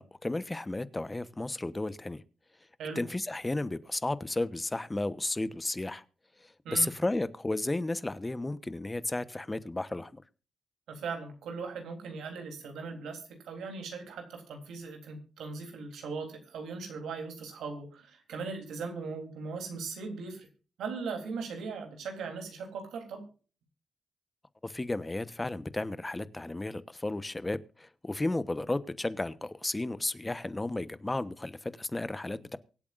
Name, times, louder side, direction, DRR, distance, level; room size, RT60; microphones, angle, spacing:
voice 1, 0.0-2.2 2.9-6.0 6.4-10.2 24.6-32.6, left 2 dB, 25° left, 1.1 m, -33 dB
voice 2, 10.9-20.5 20.8-23.2, right 4 dB, 90° right, 3.5 m, -39 dB
24.0 x 8.4 x 2.6 m
supercardioid pair, 50°, 0 cm